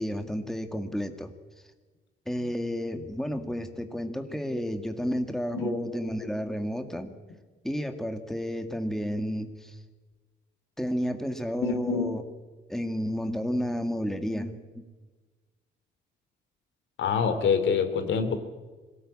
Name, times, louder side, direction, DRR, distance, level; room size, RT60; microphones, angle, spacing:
voice 1, 0.0-1.3 2.3-7.1 7.6-9.8 10.8-12.2 12.7-14.8, equal, ahead, 6 dB, 2.0 m, -31 dB
voice 2, 11.6-12.1 17.0-18.4, left 6 dB, 70° left, 8 dB, 3.0 m, -26 dB
21.5 x 17.5 x 8.7 m, 1.3 s
cardioid pair, 90°, 20 cm